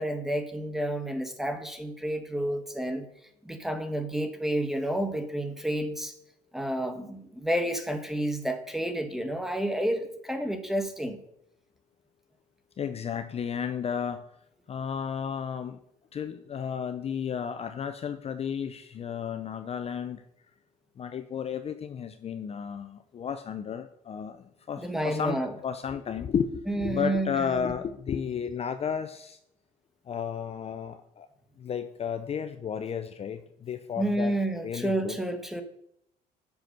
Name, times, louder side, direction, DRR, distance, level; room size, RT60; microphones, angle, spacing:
voice 1, 0.0-3.1 3.4-6.1 6.5-11.2 24.8-25.5 26.7-27.7 34.0-35.6, right 1 dB, ahead, 7 dB, 1.4 m, -30 dB
voice 2, 12.8-14.3 14.7-15.8 16.1-20.2 21.0-29.4 30.1-31.3 31.6-34.4 34.6-35.2, left 7 dB, 35° left, 9 dB, 0.6 m, -33 dB
7.9 x 6.0 x 6.5 m, 0.74 s
cardioid pair, 110°, 17 cm